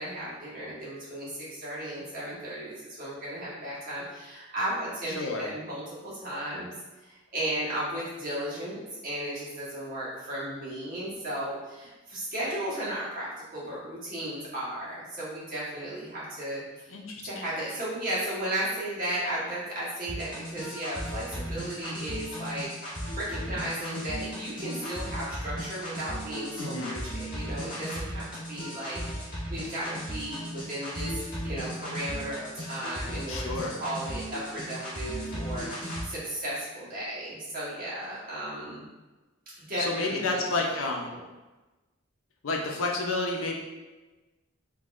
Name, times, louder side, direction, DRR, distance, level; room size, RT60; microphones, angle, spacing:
voice 1, 0.0-6.7 7.0-17.0 17.2-31.1 31.4-33.5 33.8-38.8 39.6-40.4 41.1-41.2, right 1 dB, 45° right, -8 dB, 1.3 m, -35 dB
voice 2, 5.1-5.5 16.9-17.4 26.6-27.0 33.3-33.8 39.8-41.1 42.4-43.5, left 3 dB, 85° left, 1 dB, 0.6 m, -30 dB
sound 1, 20.1-36.1, equal, 45° left, 1.4 m, -36 dB
3.8 x 2.8 x 2.4 m, 1.2 s
head